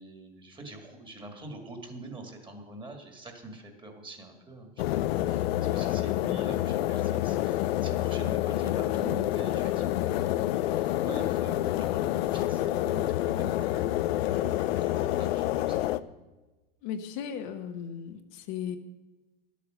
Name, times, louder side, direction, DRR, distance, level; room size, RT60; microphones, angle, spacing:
voice 1, 0.0-14.0 14.3-16.1, right 2 dB, 15° right, 3 dB, 2.2 m, -44 dB
sound 1, 4.8-16.0, left 14 dB, 90° left, 0.5 m, -28 dB
voice 2, 6.0-6.5 16.8-18.8, left 8 dB, 60° left, 6 dB, 1.1 m, -36 dB
11.5 x 8.4 x 6.4 m, 1.2 s
supercardioid pair, 120°, 30 cm